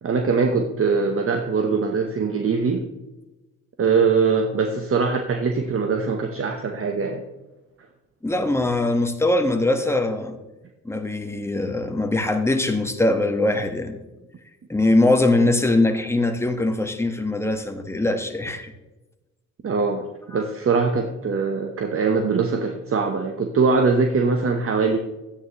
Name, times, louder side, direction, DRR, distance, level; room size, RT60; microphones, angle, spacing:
voice 1, 0.0-2.8 3.8-7.2 19.6-25.0, right 4 dB, 45° right, 5 dB, 1.1 m, -22 dB
voice 2, 8.2-10.4 10.8-14.0 14.7-18.7 20.3-20.4, left 2 dB, 10° left, 6 dB, 1.4 m, -22 dB
11.5 x 9.2 x 3.1 m, 1.1 s
supercardioid pair, 60°, 31 cm